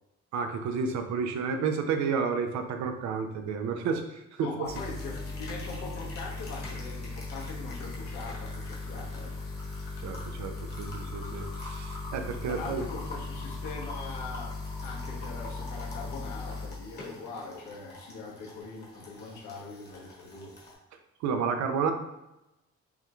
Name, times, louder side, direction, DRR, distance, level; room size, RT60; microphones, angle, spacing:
voice 1, 0.3-4.7 10.0-12.8 21.2-21.9, right 5 dB, 70° right, 6 dB, 0.6 m, -31 dB
voice 2, 4.4-9.5 12.4-20.6, left 3 dB, 90° left, -3 dB, 1.3 m, -42 dB
sound 1, 4.6-20.7, left 3 dB, 35° left, 1.1 m, -39 dB
5.4 x 2.3 x 3.0 m, 0.93 s
cardioid pair, 170°, 29 cm